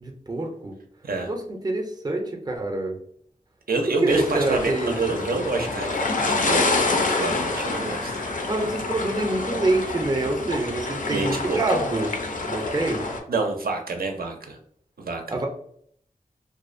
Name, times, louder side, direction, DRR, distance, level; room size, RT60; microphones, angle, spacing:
voice 1, 0.0-0.7 1.2-3.0 4.0-5.3 8.5-12.1 12.4-13.0 15.3-15.5, right 2 dB, 25° right, 2 dB, 0.4 m, -26 dB
voice 2, 3.7-8.1 11.0-11.6 13.3-14.6 15.0-15.4, right 3 dB, 80° right, 4 dB, 0.5 m, -28 dB
sound 1, 4.1-13.2, left 3 dB, 60° left, 0.4 m, -27 dB
sound 2, 6.2-10.4, left 1 dB, 90° left, 0.8 m, -41 dB
2.5 x 2.0 x 2.4 m, 0.64 s
wide cardioid pair, 65°, 15 cm